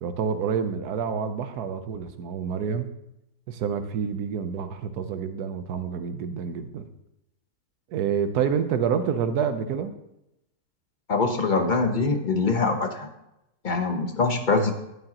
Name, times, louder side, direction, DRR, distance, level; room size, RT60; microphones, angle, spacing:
voice 1, 0.0-2.9 3.5-6.9 7.9-9.9, right 7 dB, 75° right, 9 dB, 1.3 m, -28 dB
voice 2, 11.1-13.1 13.6-14.7, left 3 dB, 35° left, 5 dB, 0.9 m, -23 dB
13.0 x 9.0 x 2.9 m, 0.86 s
omnidirectional pair, 1.7 m